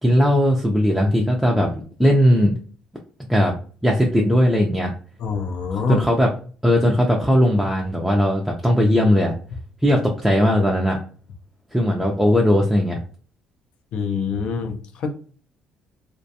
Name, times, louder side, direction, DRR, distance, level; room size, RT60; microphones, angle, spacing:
voice 1, 0.0-1.7 2.0-2.5 3.3-3.5 3.8-4.9 5.9-6.3 6.6-9.3 9.8-11.0 11.7-13.0, equal, ahead, -2 dB, 0.4 m, -18 dB
voice 2, 5.2-6.1 13.9-15.1, left 6 dB, 65° left, 5 dB, 0.4 m, -25 dB
2.3 x 2.2 x 2.7 m, 0.42 s
cardioid pair, 110°, 2 cm